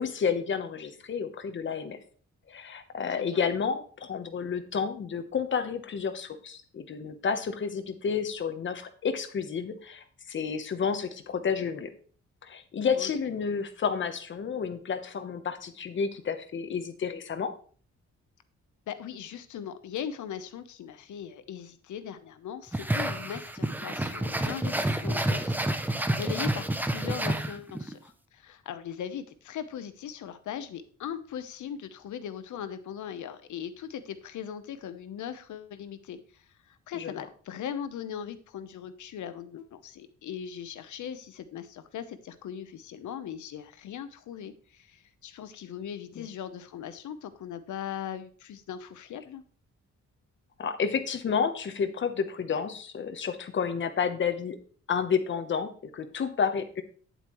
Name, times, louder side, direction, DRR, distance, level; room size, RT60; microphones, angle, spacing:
voice 1, 0.0-2.0 2.5-11.9 12.4-17.5 37.0-37.1 46.2-46.3 50.6-54.6 54.9-56.8, left 6 dB, 40° left, 8 dB, 0.9 m, -30 dB
voice 2, 3.1-3.4 12.9-13.1 18.9-49.4, left 9 dB, 80° left, 11 dB, 0.9 m, -39 dB
sound 1, 22.7-27.9, right 1 dB, 5° right, 0.5 m, -29 dB
9.2 x 8.0 x 3.1 m, 0.43 s
wide cardioid pair, 170°, 29 cm